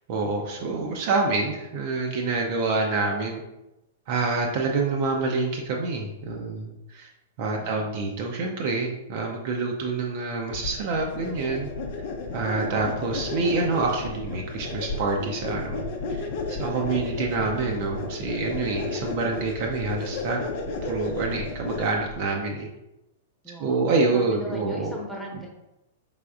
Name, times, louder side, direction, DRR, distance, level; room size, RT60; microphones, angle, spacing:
voice 1, 0.1-3.4 4.1-7.1 7.4-11.7 12.3-15.8 16.1-20.4 20.8-22.7 23.6-25.0, right 3 dB, 45° right, 0 dB, 0.6 m, -27 dB
sound 1, 10.5-22.2, left 3 dB, 45° left, 0.6 m, -33 dB
voice 2, 23.4-25.5, equal, ahead, -2 dB, 1.0 m, -38 dB
4.9 x 3.5 x 2.3 m, 0.94 s
figure-of-eight pair, 100°, 0 cm